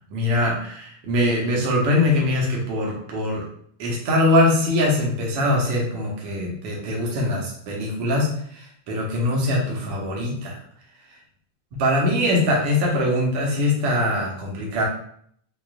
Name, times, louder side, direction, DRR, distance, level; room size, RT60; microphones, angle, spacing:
voice 1, 0.1-3.4 3.8-10.6 11.8-14.8, left 1 dB, 75° right, -2 dB, 1.4 m, -22 dB
6.3 x 2.4 x 2.2 m, 0.64 s
omnidirectional pair, 3.6 m